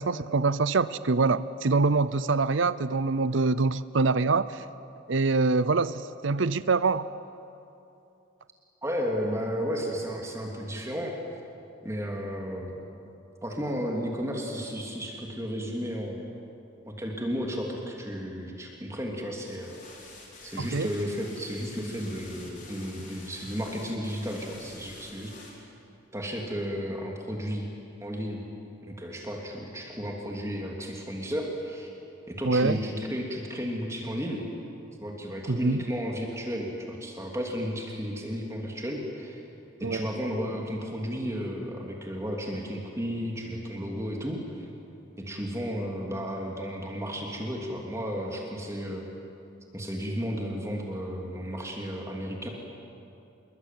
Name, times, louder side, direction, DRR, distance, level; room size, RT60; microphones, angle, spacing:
voice 1, 0.0-4.6 5.1-7.1 20.6-20.9 32.4-32.8 35.5-35.8 39.8-40.0, right 3 dB, 70° right, 16 dB, 0.6 m, -25 dB
voice 2, 8.8-11.2 11.8-12.7 13.4-16.2 16.8-19.8 20.4-25.7 26.1-27.7 28.0-28.4 28.9-31.9 32.3-34.5 35.0-39.4 39.8-44.7 45.2-49.1 49.7-52.5, equal, 15° right, 0 dB, 2.9 m, -33 dB
sound 1, 19.5-25.5, left 3 dB, 40° left, 5.5 m, -48 dB
27.0 x 22.0 x 9.2 m, 2.8 s
head